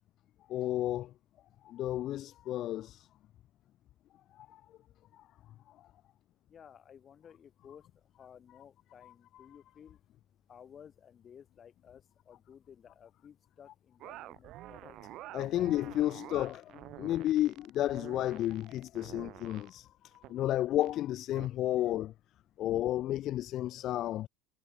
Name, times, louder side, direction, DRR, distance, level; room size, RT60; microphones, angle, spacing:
voice 1, 0.5-1.1 1.6-3.1 4.4-4.6 5.1-5.2 15.3-22.1 22.6-24.3, left 13 dB, 45° left, 0.3 m, -32 dB
voice 2, 6.5-10.0 10.5-15.1, left 8 dB, 30° left, 1.8 m, -56 dB
sound 1, 14.0-19.7 20.2-20.4 20.8-20.9 21.4-21.5, right 16 dB, 50° right, 0.5 m, -48 dB
supercardioid pair, 135°, 0 cm